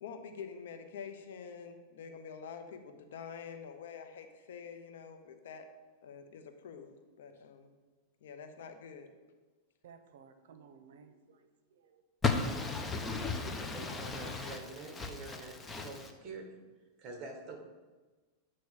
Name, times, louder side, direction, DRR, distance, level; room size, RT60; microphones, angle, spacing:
voice 1, 0.0-5.7 6.0-7.7 8.2-9.1, left 6 dB, 80° left, 6 dB, 0.9 m, -47 dB
voice 2, 9.8-12.0, right 6 dB, 75° right, 8 dB, 0.7 m, -57 dB
voice 3, 12.2-14.6 14.9-16.1, left 4 dB, 15° left, 4 dB, 0.7 m, -35 dB
voice 4, 13.5-16.5 17.0-17.6, right 3 dB, 35° right, 3 dB, 1.6 m, -46 dB
8.5 x 3.1 x 6.3 m, 1.3 s
supercardioid pair, 135°, 0 cm